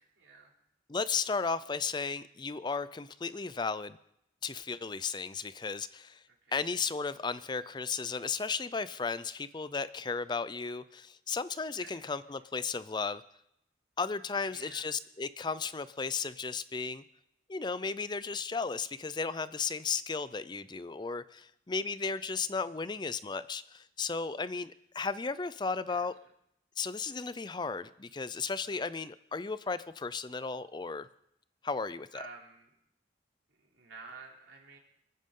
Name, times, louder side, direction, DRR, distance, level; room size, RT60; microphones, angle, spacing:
voice 1, 0.2-0.5 6.3-6.4 10.7-10.8 11.8-12.0 14.5-14.9 22.8-23.0 25.9-26.1 28.7-28.8 32.1-32.7 33.5-34.8, right 4 dB, 85° right, -1 dB, 3.2 m, -51 dB
voice 2, 0.9-4.0 4.4-6.2 6.5-13.2 14.0-17.0 17.5-26.1 26.8-31.1 31.6-32.2, left 4 dB, 25° left, 15 dB, 0.4 m, -35 dB
27.0 x 9.5 x 3.8 m, 0.77 s
head